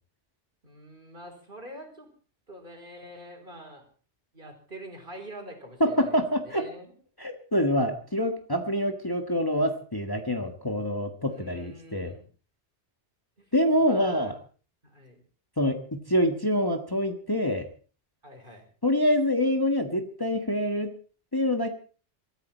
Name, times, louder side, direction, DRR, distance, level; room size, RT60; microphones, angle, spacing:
voice 1, 0.6-2.1 2.5-3.8 4.3-6.9 11.2-12.3 13.4-13.5 13.8-14.4 14.8-15.2 18.2-18.7, right 1 dB, 45° right, 4 dB, 4.4 m, -45 dB
voice 2, 5.8-6.7 7.2-12.2 13.5-14.3 15.6-17.7 18.8-20.9 21.3-21.7, equal, 20° left, 5 dB, 1.5 m, -26 dB
24.0 x 13.0 x 4.4 m, 0.40 s
omnidirectional pair, 1.2 m